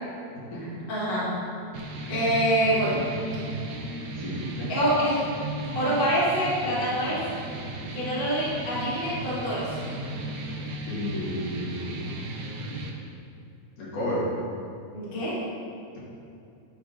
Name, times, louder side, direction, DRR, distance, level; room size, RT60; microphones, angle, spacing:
voice 1, 0.9-1.4 2.1-3.0 4.7-5.3 5.7-7.2 7.9-9.7 14.9-15.4, equal, 30° left, -8 dB, 1.1 m, -25 dB
sound 1, 1.7-12.9, right 1 dB, 75° right, 1.9 m, -35 dB
voice 2, 4.2-4.7 10.9-12.0 13.8-14.3, left 1 dB, 70° left, -7 dB, 3.2 m, -32 dB
9.6 x 3.5 x 4.9 m, 2.5 s
omnidirectional pair, 3.8 m